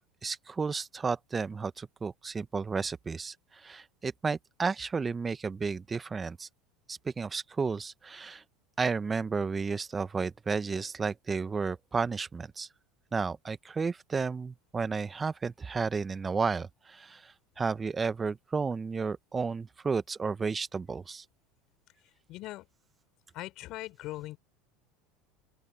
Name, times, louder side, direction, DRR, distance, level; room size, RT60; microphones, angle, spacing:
voice 1, 0.2-3.3 3.6-6.5 6.9-8.4 8.8-12.7 13.1-17.2 17.6-21.2, right 5 dB, 25° right, 1.3 m, -32 dB
voice 2, 22.3-22.7 23.3-24.4, left 17 dB, 55° left, 4.1 m, -40 dB
open air
hypercardioid pair, 80°, 0 cm